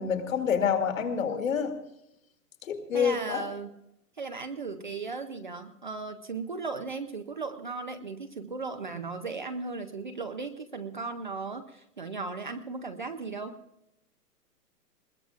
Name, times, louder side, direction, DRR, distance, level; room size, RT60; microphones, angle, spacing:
voice 1, 0.0-1.7 2.6-3.4, left 7 dB, 55° left, 4 dB, 2.5 m, -27 dB
voice 2, 2.9-3.7 4.2-13.6, right 4 dB, 30° right, 6 dB, 0.5 m, -36 dB
21.5 x 20.5 x 2.4 m, 0.83 s
hypercardioid pair, 160°, 47 cm